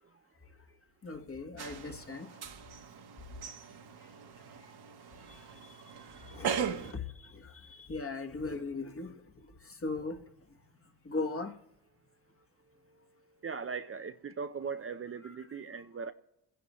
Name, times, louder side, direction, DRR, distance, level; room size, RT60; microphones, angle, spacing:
voice 1, 1.0-2.3 6.3-7.0 7.7-9.2 9.8-10.2 11.0-11.5, left 3 dB, 35° left, 1.4 m, -37 dB
sound 1, 1.6-6.9, right 8 dB, 70° right, 1.3 m, -39 dB
voice 2, 13.4-16.1, right 5 dB, 35° right, 0.6 m, -39 dB
27.0 x 10.0 x 3.0 m
cardioid pair, 65°, 41 cm